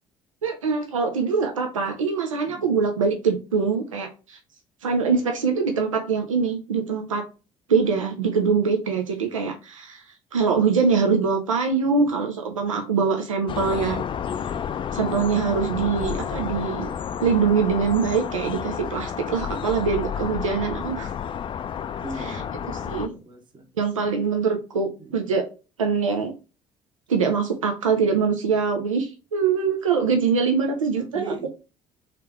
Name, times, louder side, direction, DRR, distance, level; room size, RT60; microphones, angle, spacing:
voice 1, 0.4-4.4 4.8-7.3 7.7-10.0 10.3-14.0 14.9-16.9 17.2-21.1 22.2-22.4 22.9-23.1 23.8-25.4 25.8-26.3 27.1-31.5, right 5 dB, 85° right, 4 dB, 0.4 m, -23 dB
voice 2, 2.5-3.0 11.8-12.3 22.0-22.6 22.9-23.7 25.0-25.2 31.0-31.5, right 1 dB, 30° right, 3 dB, 0.9 m, -39 dB
sound 1, 13.5-23.1, left 8 dB, 30° left, 0.4 m, -30 dB
3.5 x 3.2 x 3.4 m, 0.33 s
figure-of-eight pair, 50°, 17 cm